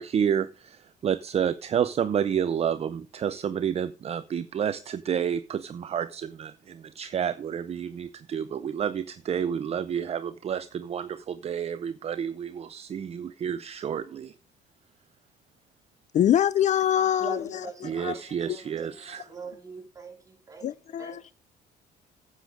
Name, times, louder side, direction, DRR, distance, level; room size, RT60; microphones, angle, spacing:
voice 1, 0.0-14.3 17.9-19.2, right 8 dB, 40° right, 0.6 m, -30 dB
voice 2, 16.1-17.4 18.0-18.1 20.6-21.2, left 10 dB, 45° left, 0.5 m, -23 dB
voice 3, 17.2-21.3, right 4 dB, 20° right, 3.8 m, -43 dB
9.8 x 8.1 x 5.2 m
cardioid pair, 110°, 17 cm